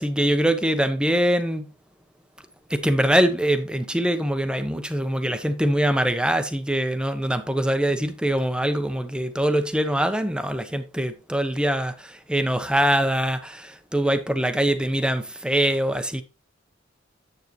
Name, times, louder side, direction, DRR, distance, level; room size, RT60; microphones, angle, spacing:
voice 1, 0.0-1.7 2.7-16.2, right 1 dB, 5° right, 0.9 m, -23 dB
9.4 x 8.5 x 3.1 m
head